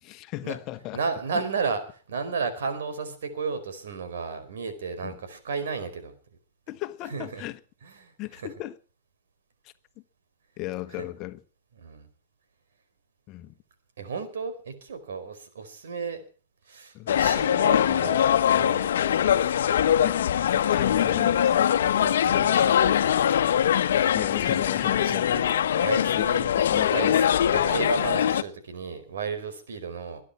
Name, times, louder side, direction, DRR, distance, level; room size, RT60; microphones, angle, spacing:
voice 1, 0.0-1.0 5.0-5.2 6.7-7.6 8.2-8.8 9.6-9.7 10.6-11.4 13.3-13.6 16.9-17.2 20.0-21.7 24.1-25.4 26.2-27.2, left 17 dB, 40° left, 1.3 m, -36 dB
voice 2, 0.9-6.1 7.1-7.4 7.8-8.1 11.8-12.1 14.0-16.2 16.6-19.4 22.0-23.0 25.0-25.4 25.8-26.5 26.9-27.2 27.5-30.2, right 5 dB, 85° right, 4.7 m, -33 dB
sound 1, 17.1-28.4, left 9 dB, 80° left, 1.1 m, -22 dB
22.0 x 10.0 x 5.9 m
hypercardioid pair, 130°, 0 cm